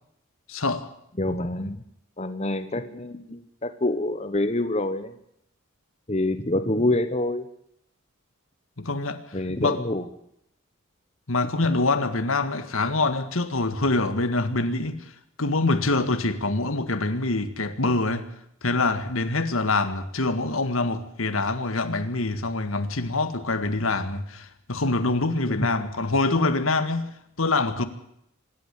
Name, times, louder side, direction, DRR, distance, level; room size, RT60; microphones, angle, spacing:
voice 1, 0.5-0.9 8.8-9.2 9.6-9.8 11.3-15.0 15.4-18.3 18.6-27.1 27.4-27.8, left 2 dB, 75° left, 1.9 m, -25 dB
voice 2, 1.2-1.8 2.2-5.1 6.1-7.4 9.3-10.1 25.5-25.9, left 1 dB, 30° left, 1.2 m, -26 dB
26.0 x 12.0 x 8.4 m
head